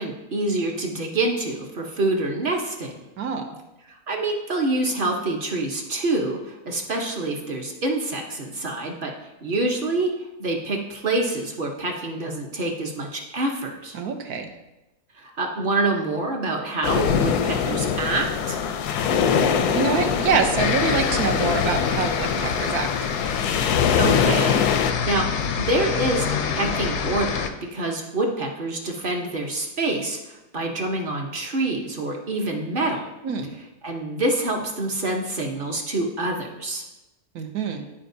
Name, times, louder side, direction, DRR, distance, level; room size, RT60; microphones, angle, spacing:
voice 1, 0.0-3.0 4.1-9.1 9.4-10.1 10.4-14.0 15.1-18.6 24.0-25.3 25.6-33.1 33.8-36.8, right 2 dB, 45° right, 1 dB, 0.8 m, -26 dB
voice 2, 3.2-3.6 13.9-14.5 19.7-22.9 33.2-33.5 37.3-37.9, right 5 dB, 75° right, 4 dB, 1.3 m, -25 dB
sound 1, 16.8-24.9, left 7 dB, 85° left, 1.1 m, -23 dB
sound 2, 20.6-27.5, left 7 dB, 65° left, 0.7 m, -26 dB
11.5 x 4.4 x 2.6 m, 0.98 s
omnidirectional pair, 1.6 m